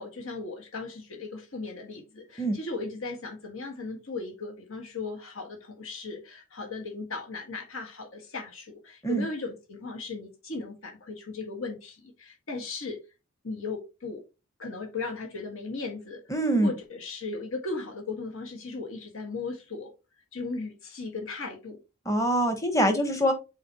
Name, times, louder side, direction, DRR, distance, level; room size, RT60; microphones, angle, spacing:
voice 1, 0.0-13.0 13.4-14.2 14.6-16.2 16.6-19.9 20.3-21.8, left 3 dB, 70° left, 1.8 m, -37 dB
voice 2, 16.3-16.7 22.0-23.3, right 1 dB, 15° left, 1.1 m, -24 dB
7.7 x 4.2 x 3.0 m
head